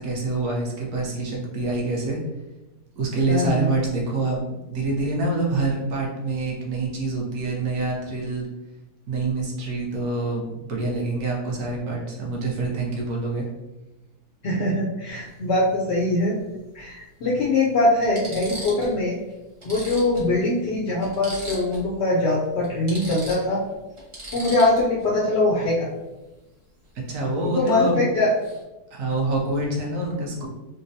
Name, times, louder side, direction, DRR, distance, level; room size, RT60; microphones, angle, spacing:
voice 1, 0.0-2.2 3.0-8.5 9.1-13.5 26.9-28.0 28.9-30.5, right 2 dB, 60° right, -2 dB, 1.0 m, -26 dB
voice 2, 3.3-3.7 14.4-16.4 16.7-19.2 19.6-23.6 24.3-25.9 27.4-28.3, left 2 dB, 70° left, -5 dB, 0.6 m, -22 dB
sound 1, 15.1-15.3 16.8-16.9 17.5-17.6 18.0-19.0 19.3-19.4 19.6-21.9 22.2-22.3 22.6-25.0 27.6-27.9 28.1-28.6, right 1 dB, 30° right, 0.5 m, -38 dB
3.6 x 2.1 x 2.6 m, 1.0 s
omnidirectional pair, 1.6 m